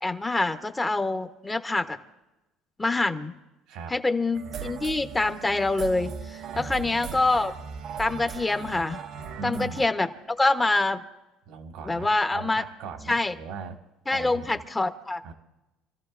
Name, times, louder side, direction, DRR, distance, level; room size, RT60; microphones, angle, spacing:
voice 1, 0.0-2.0 2.8-3.3 3.9-7.5 8.0-9.0 9.4-10.1 10.4-11.0 11.9-12.6 13.1-13.3 14.1-15.2, left 2 dB, 15° left, 8 dB, 0.9 m, -25 dB
voice 2, 3.7-4.0 6.5-7.2 9.4-9.8 11.4-13.8 14.1-14.6 15.2-15.3, right 4 dB, 75° right, 5 dB, 1.6 m, -39 dB
sound 1, 4.3-9.9, right 7 dB, 55° right, 0.7 m, -38 dB
28.5 x 14.0 x 2.5 m, 1.0 s
supercardioid pair, 105°, 0 cm